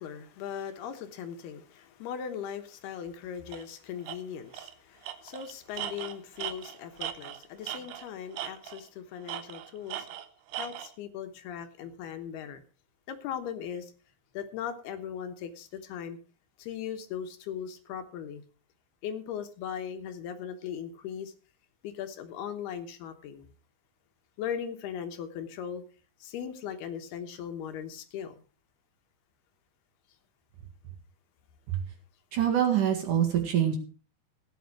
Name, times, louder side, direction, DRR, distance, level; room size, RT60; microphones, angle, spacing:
voice 1, 0.0-10.1 10.6-12.6 13.1-13.9 14.3-16.2 16.6-18.4 19.0-21.3 21.8-23.5 24.4-25.8 26.2-28.4, left 8 dB, 75° left, 3.1 m, -38 dB
Tools, 3.5-3.6 4.0-4.2 4.5-4.7 5.0-8.1 8.4-8.9 9.3-10.9, right 12 dB, 90° right, 1.7 m, -38 dB
voice 2, 32.3-33.8, right 10 dB, 55° right, 3.0 m, -25 dB
15.5 x 9.3 x 4.7 m
omnidirectional pair, 4.8 m